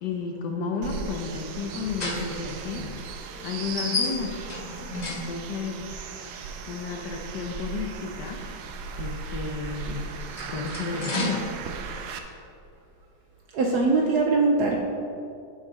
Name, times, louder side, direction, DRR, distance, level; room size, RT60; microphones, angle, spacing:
voice 1, 0.0-2.9 3.4-4.4 5.1-5.8 6.7-8.5 9.0-10.1 10.5-11.6, left 5 dB, 70° left, 2 dB, 1.1 m, -32 dB
sound 1, 0.8-12.2, right 5 dB, 90° right, 1.4 m, -37 dB
sound 2, 1.5-5.8 7.0-7.1 10.0-11.5, left 3 dB, 50° left, 0.5 m, -33 dB
voice 2, 13.5-14.8, right 3 dB, 70° right, 0 dB, 1.0 m, -21 dB
6.9 x 5.9 x 3.9 m, 2.5 s
omnidirectional pair, 2.2 m